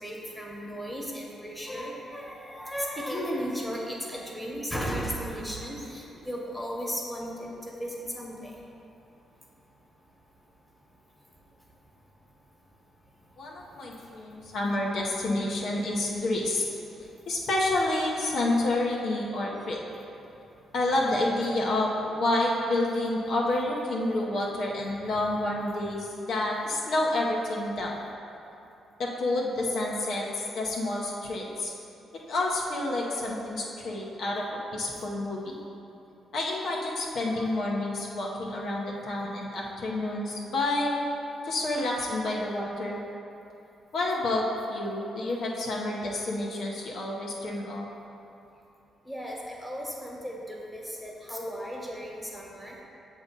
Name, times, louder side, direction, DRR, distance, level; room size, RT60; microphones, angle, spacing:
voice 1, 0.0-8.5 20.9-21.0 25.0-25.2 37.3-37.5 49.1-52.7, equal, ahead, -3 dB, 1.3 m, -35 dB
voice 2, 13.4-16.7 17.3-19.8 20.7-27.9 29.0-31.7 32.3-34.4 34.7-35.6 36.3-41.0 41.4-43.0 43.9-47.9, left 2 dB, 70° left, -3 dB, 0.8 m, -29 dB
6.9 x 2.8 x 5.3 m, 2.8 s
supercardioid pair, 55°, 0 cm